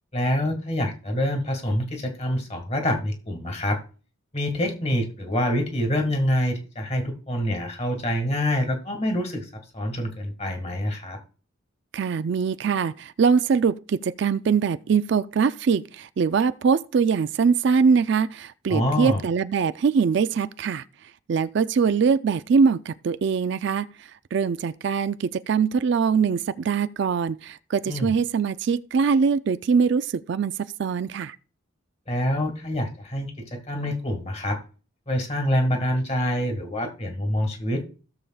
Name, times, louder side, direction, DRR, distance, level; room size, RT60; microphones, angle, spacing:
voice 1, 0.1-3.8 4.3-11.2 18.7-19.2 27.9-28.1 32.1-34.6 35.1-37.8, left 1 dB, 30° left, 1.8 m, -26 dB
voice 2, 11.9-20.8 21.3-23.9 24.3-31.4, right 6 dB, 55° right, 0.3 m, -22 dB
16.5 x 7.0 x 2.3 m
head